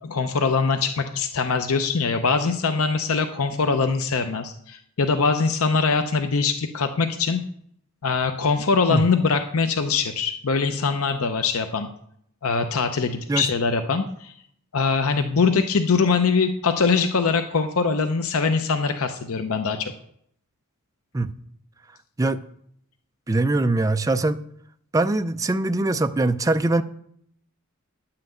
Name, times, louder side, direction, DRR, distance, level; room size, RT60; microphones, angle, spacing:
voice 1, 0.0-7.4 8.0-11.9 12.4-14.3 14.7-19.9, left 4 dB, 75° left, 0.7 m, -22 dB
voice 2, 23.3-24.4 24.9-26.8, right 2 dB, 15° right, 0.4 m, -22 dB
10.0 x 5.8 x 7.8 m
head